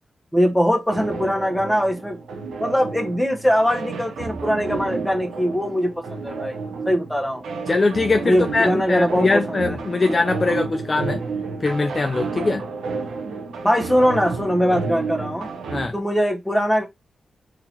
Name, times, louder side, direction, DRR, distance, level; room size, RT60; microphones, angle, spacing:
voice 1, 0.3-2.2 2.6-6.6 6.8-7.4 8.3-9.8 13.6-15.5 15.9-16.8, equal, 5° left, 1.2 m, -21 dB
sound 1, 0.9-15.9, right 4 dB, 90° right, 0.7 m, -31 dB
voice 2, 7.7-11.2 11.6-12.6 15.7-15.9, left 3 dB, 40° left, 0.4 m, -21 dB
3.8 x 2.7 x 2.8 m
cardioid pair, 65°, 0 cm